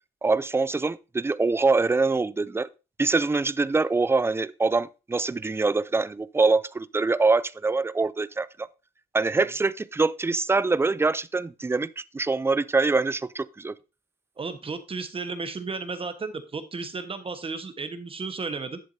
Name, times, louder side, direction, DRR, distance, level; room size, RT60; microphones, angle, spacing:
voice 1, 0.2-2.7 3.0-8.7 9.1-13.8, right 3 dB, 15° right, 0.4 m, -24 dB
voice 2, 14.4-18.8, right 4 dB, 35° right, 1.2 m, -33 dB
10.5 x 7.3 x 2.7 m
cardioid pair, 105°, 17 cm